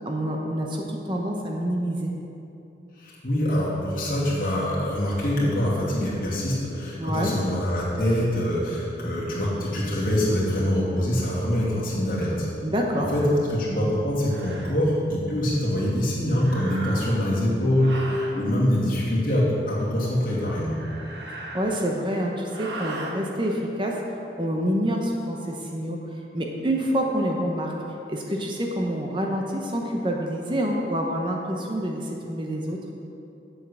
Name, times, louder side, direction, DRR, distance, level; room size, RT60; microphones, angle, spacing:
voice 1, 0.0-2.1 7.0-7.3 12.6-13.1 21.5-24.0 24.4-27.7 28.1-32.8, equal, 30° right, 0 dB, 0.9 m, -27 dB
voice 2, 3.0-12.5 12.9-20.7, left 1 dB, 50° left, -6 dB, 2.7 m, -24 dB
sound 1, 13.3-13.5 14.2-14.8 16.4-17.3 17.8-18.4 20.6-22.0 22.5-23.2, right 2 dB, 85° right, 1.4 m, -38 dB
8.4 x 7.6 x 7.0 m, 2.9 s
head